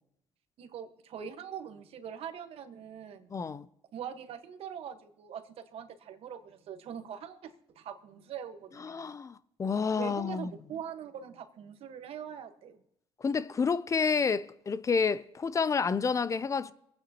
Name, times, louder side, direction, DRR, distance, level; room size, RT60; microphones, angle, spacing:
voice 1, 0.6-3.3 3.9-9.1 10.0-12.8, right 8 dB, 65° right, 1.3 m, -43 dB
voice 2, 3.3-3.7 8.8-10.5 13.2-16.7, left 5 dB, 30° left, 0.5 m, -29 dB
25.5 x 8.9 x 2.9 m
cardioid pair, 95°, 11 cm